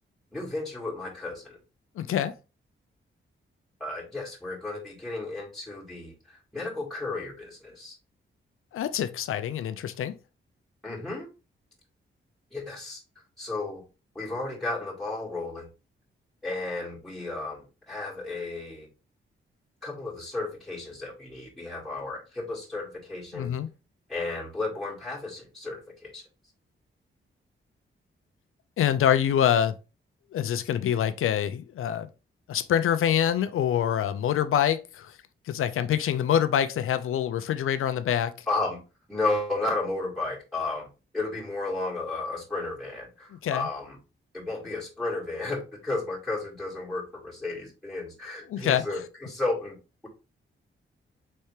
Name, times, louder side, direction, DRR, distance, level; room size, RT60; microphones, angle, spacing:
voice 1, 0.3-1.6 3.8-7.9 10.8-11.3 12.5-13.0 13.4-13.8 14.2-15.7 16.4-18.9 19.8-23.5 24.1-26.2 38.5-38.8 39.1-40.9 41.1-44.0 44.3-49.8, left 2 dB, ahead, 2.0 m, -33 dB
voice 2, 2.0-2.3 8.7-10.1 23.3-23.7 28.8-29.7 30.3-32.1 32.5-35.1 35.5-38.5 43.4-43.7 48.5-48.8, left 9 dB, 80° left, 0.5 m, -25 dB
4.3 x 3.3 x 3.2 m
cardioid pair, 80°, 21 cm